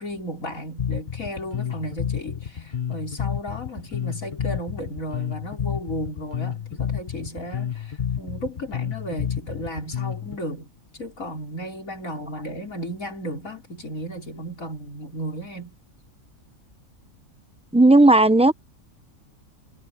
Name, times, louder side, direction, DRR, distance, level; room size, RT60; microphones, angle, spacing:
voice 1, 0.0-10.7 11.0-15.8, equal, 75° left, 4.8 m, -34 dB
Bass guitar, 0.8-10.4, left 8 dB, 40° left, 1.0 m, -30 dB
voice 2, 17.7-18.5, right 2 dB, 5° right, 0.6 m, -14 dB
omnidirectional pair, 1.4 m